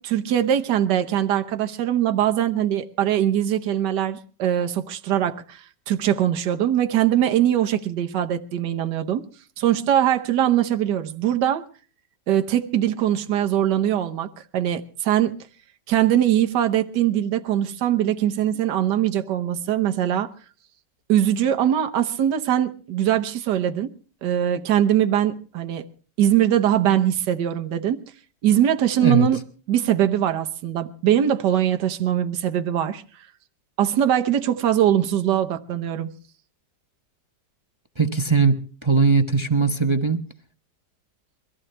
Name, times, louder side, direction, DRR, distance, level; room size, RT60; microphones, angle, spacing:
voice 1, 0.0-9.2 9.6-11.6 12.3-15.4 15.9-20.3 21.1-23.9 24.2-25.9 26.2-28.0 28.4-29.4 29.7-33.0 33.8-36.1, right 11 dB, 70° right, 1.6 m, -22 dB
voice 2, 38.0-40.2, right 4 dB, 25° right, 0.6 m, -20 dB
23.5 x 15.0 x 3.3 m
omnidirectional pair, 1.9 m